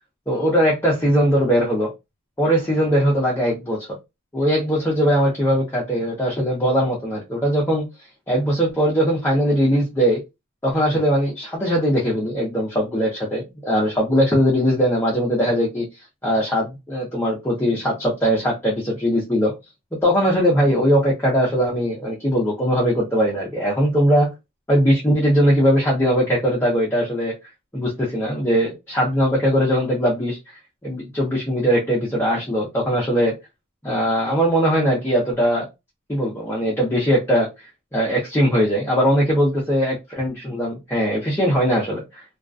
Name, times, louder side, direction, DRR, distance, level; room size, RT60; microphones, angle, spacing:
voice 1, 0.3-1.9 2.4-3.8 4.3-7.9 8.3-10.2 10.6-15.9 16.2-19.5 19.9-24.3 24.7-27.3 27.7-33.3 33.8-35.7 36.1-37.5 37.9-42.2, equal, 10° left, -5 dB, 0.6 m, -20 dB
2.3 x 2.2 x 2.4 m, 0.23 s
head